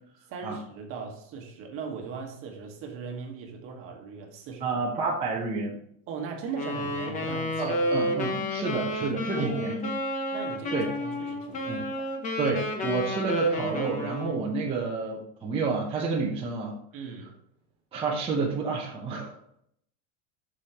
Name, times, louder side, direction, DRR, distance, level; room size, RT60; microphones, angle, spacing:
voice 1, 0.3-4.8 6.1-7.8 9.3-9.7 10.3-12.1 16.9-17.3, right 5 dB, 35° right, 2 dB, 1.5 m, -38 dB
voice 2, 4.6-5.8 7.6-9.9 10.7-10.9 11.7-11.8 12.4-16.7 17.9-19.4, right 4 dB, 15° right, -5 dB, 0.9 m, -29 dB
Wind instrument woodwind instrument, 6.5-14.5, left 1 dB, 20° left, 0.9 m, -30 dB
8.2 x 6.4 x 2.9 m, 0.68 s
cardioid pair, 180°, 40 cm